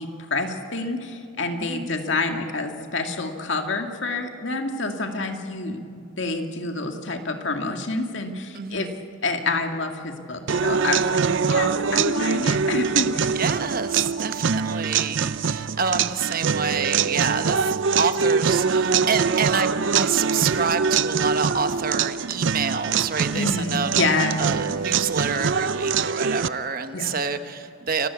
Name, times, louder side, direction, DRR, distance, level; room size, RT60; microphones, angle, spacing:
voice 1, 0.0-8.9 9.2-13.4 23.3-24.4 26.9-27.1, left 3 dB, 60° left, 4 dB, 2.1 m, -28 dB
voice 2, 1.6-1.9 8.5-8.9 13.3-24.1 24.4-28.1, right 5 dB, 45° right, 9 dB, 1.1 m, -27 dB
sound 1, 10.5-26.5, right 6 dB, 60° right, 0.5 m, -23 dB
28.5 x 15.5 x 8.4 m, 2.6 s
head